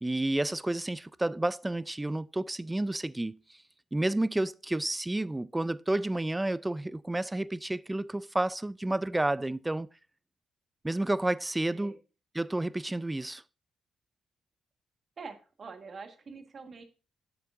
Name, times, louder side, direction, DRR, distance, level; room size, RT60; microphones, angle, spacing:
voice 1, 0.0-3.3 3.9-9.9 10.8-12.0 12.3-13.4, right 1 dB, 15° right, 0.3 m, -30 dB
voice 2, 11.7-12.0 15.2-16.8, right 4 dB, 55° right, 1.3 m, -45 dB
8.4 x 6.8 x 2.4 m
supercardioid pair, 55°, 0 cm